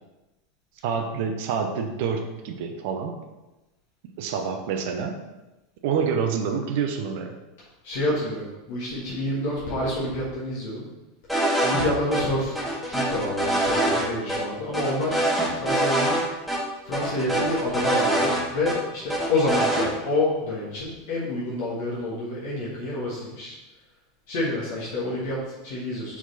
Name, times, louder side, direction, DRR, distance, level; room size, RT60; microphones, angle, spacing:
voice 1, 0.8-3.2 4.2-5.2 5.8-7.4, right 6 dB, 55° right, 5 dB, 0.8 m, -27 dB
voice 2, 7.8-10.9 11.6-12.6 12.9-15.3 15.5-16.2 16.8-23.5 24.3-26.2, left 1 dB, 55° left, -6 dB, 1.7 m, -28 dB
sound 1, 11.3-11.9 12.1-12.2 12.6-14.0 14.3-14.4 14.7-16.2 16.5-16.6 16.9-18.8 19.1-19.9, right 1 dB, ahead, 1.5 m, -24 dB
5.9 x 4.6 x 4.2 m, 1.0 s
figure-of-eight pair, 80°, 0 cm